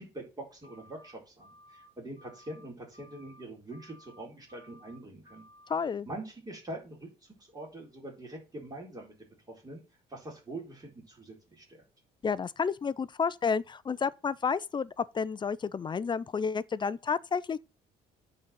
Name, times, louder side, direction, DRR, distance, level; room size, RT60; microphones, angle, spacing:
voice 1, 0.0-5.4 6.1-9.8 10.1-11.8, right 1 dB, 20° right, 4.2 m, -44 dB
sound 1, 0.6-1.1 1.4-1.9 2.2-2.6 2.9-3.4 3.7-4.2 4.5-5.0 5.2-5.7, equal, 45° right, 2.4 m, -57 dB
voice 2, 5.7-6.1 12.2-17.6, left 5 dB, 25° left, 0.5 m, -31 dB
9.3 x 4.1 x 7.4 m
cardioid pair, 110°, 17 cm